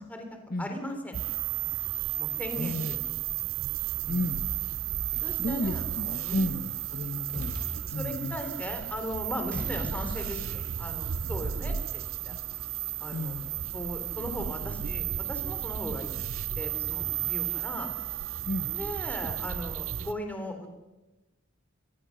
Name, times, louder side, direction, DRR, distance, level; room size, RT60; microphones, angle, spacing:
voice 1, 0.6-1.2 2.2-3.1 4.0-4.2 5.2-5.8 6.2-6.4 7.9-12.4 13.0-16.1 16.5-17.9 18.6-20.7, left 1 dB, 5° left, 4 dB, 3.4 m, -38 dB
sound 1, 1.1-20.1, right 10 dB, 75° right, 0.7 m, -33 dB
voice 2, 2.5-2.9 4.1-4.4 5.1-6.6 6.9-8.4 9.5-9.7 13.1-13.5 18.4-18.7, left 1 dB, 50° left, 6 dB, 1.5 m, -33 dB
sound 2, 6.8-7.1 7.3-8.2 8.4-8.7 9.0-10.9 11.1-11.4, right 1 dB, 45° right, 7.3 m, -39 dB
25.5 x 19.0 x 6.5 m, 1.1 s
head